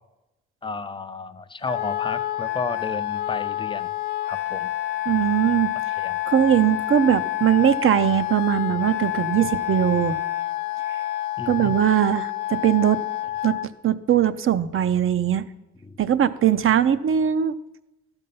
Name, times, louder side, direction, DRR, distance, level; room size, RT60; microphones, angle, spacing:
voice 1, 0.6-3.9 4.3-4.7 6.0-6.2 11.4-11.7 15.8-16.0, left 4 dB, 15° left, 12 dB, 0.5 m, -32 dB
Wind instrument woodwind instrument, 1.6-13.7, left 14 dB, 85° left, 0.5 m, -28 dB
voice 2, 5.1-5.7 6.3-10.2 11.5-13.0 13.4-13.5 13.8-15.4 16.0-17.5, right 10 dB, 45° right, 13 dB, 0.5 m, -20 dB
12.5 x 5.4 x 5.4 m, 0.98 s
cardioid pair, 90°, 30 cm